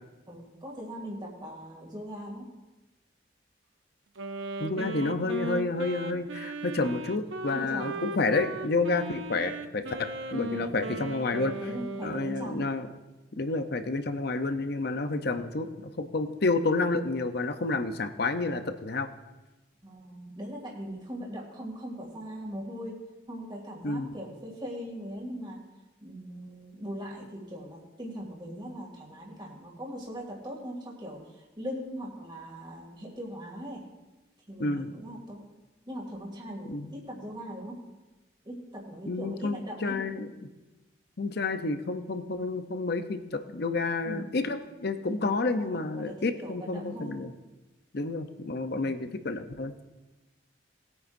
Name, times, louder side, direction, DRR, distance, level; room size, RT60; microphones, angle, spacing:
voice 1, 0.3-2.5 7.5-8.1 10.5-11.0 11.6-12.6 19.8-23.0 23.3-25.6 26.0-33.8 34.5-35.5 35.9-37.7 38.4-39.9 44.0-44.3 45.0-45.2 45.5-47.2 48.7-49.0, equal, 25° right, -2 dB, 2.6 m, -40 dB
Wind instrument woodwind instrument, 4.2-12.4, right 2 dB, 90° right, 0.7 m, -37 dB
voice 2, 4.6-11.5 12.0-12.9 13.4-19.1 23.8-24.1 34.6-34.9 36.7-36.9 39.1-40.3 41.2-47.3 47.9-49.7, left 3 dB, 55° left, 8 dB, 0.7 m, -30 dB
20.0 x 9.4 x 2.7 m, 1.1 s
head